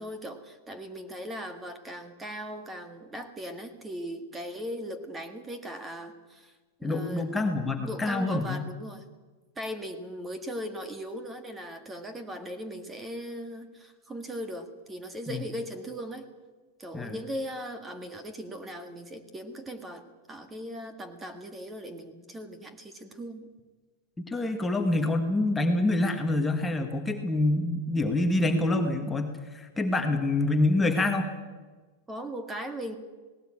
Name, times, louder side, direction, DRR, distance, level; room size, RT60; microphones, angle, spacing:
voice 1, 0.0-6.5 6.8-7.3 7.8-9.0 9.6-16.3 16.8-23.5 32.1-33.0, equal, 15° right, 8 dB, 1.9 m, -38 dB
voice 2, 6.8-8.6 15.3-15.4 16.9-17.1 24.3-31.3, left 2 dB, 10° left, 3 dB, 1.6 m, -26 dB
18.5 x 17.5 x 8.8 m, 1.3 s
supercardioid pair, 145°, 0 cm